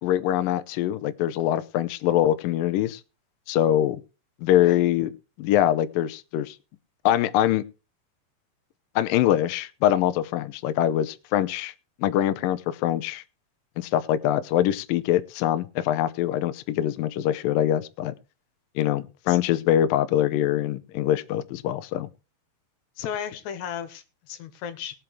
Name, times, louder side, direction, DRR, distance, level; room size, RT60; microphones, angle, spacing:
voice 1, 0.0-3.0 3.5-4.0 4.4-5.1 5.4-6.6 7.1-7.6 9.0-11.7 12.0-13.2 13.8-18.1 18.8-22.1, left 12 dB, 90° left, 1.9 m, -23 dB
voice 2, 23.0-25.0, left 8 dB, 75° left, 3.3 m, -34 dB
20.5 x 7.5 x 3.3 m
omnidirectional pair, 5.2 m